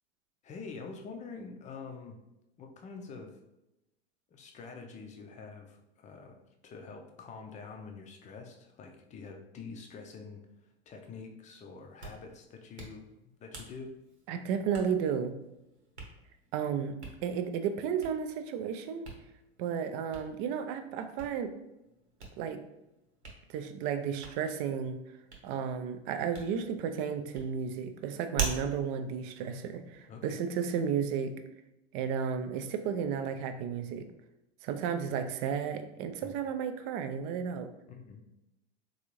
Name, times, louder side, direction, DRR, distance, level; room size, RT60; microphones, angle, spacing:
voice 1, 0.4-2.2 2.6-3.4 4.3-10.4 10.9-13.1 13.4-13.9 30.1-30.4 36.2-36.4 38.0-38.2, left 4 dB, 25° left, 4 dB, 0.5 m, -46 dB
Hands, 11.8-30.3, right 5 dB, 90° right, 1.0 m, -45 dB
voice 2, 14.3-15.4 16.5-17.0 17.2-19.1 19.6-21.5 22.4-22.6 23.5-25.0 25.4-31.3 31.9-34.1 34.6-37.7, right 7 dB, 45° right, 8 dB, 0.4 m, -33 dB
3.8 x 2.5 x 3.1 m, 0.90 s
hypercardioid pair, 90°, 32 cm